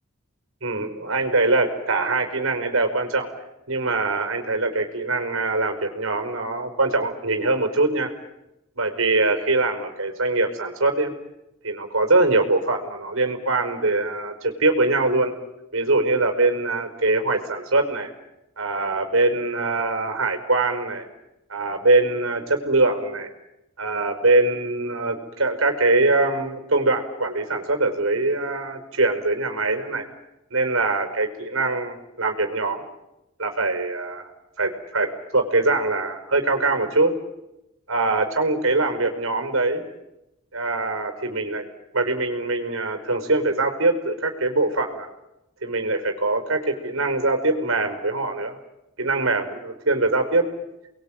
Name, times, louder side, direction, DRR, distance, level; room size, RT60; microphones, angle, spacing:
voice 1, 0.6-3.3 3.7-8.1 8.7-11.1 11.6-15.3 15.7-18.1 18.6-21.1 21.5-23.3 23.8-30.0 30.5-32.8 33.4-34.2 34.6-35.1 35.3-37.1 37.9-39.8 40.5-41.7 41.9-45.1 45.6-48.5 49.0-50.5, right 2 dB, 75° right, 6 dB, 5.1 m, -23 dB
30.0 x 22.0 x 9.1 m, 0.92 s
head